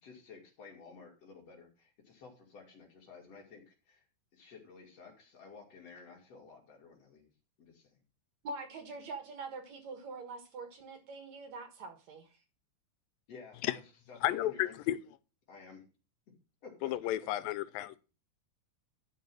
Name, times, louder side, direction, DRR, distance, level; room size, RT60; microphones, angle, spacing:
voice 1, 0.0-4.0 4.3-7.3 7.6-8.0 13.3-13.6 14.1-14.8 15.5-15.8 16.6-17.3, left 4 dB, 50° left, 3.4 m, -53 dB
voice 2, 8.4-12.4, right 3 dB, 60° right, 2.5 m, -44 dB
voice 3, 14.2-14.5 14.9-15.0 16.8-18.0, left 14 dB, 85° left, 2.3 m, -32 dB
12.0 x 4.8 x 6.2 m
omnidirectional pair, 4.0 m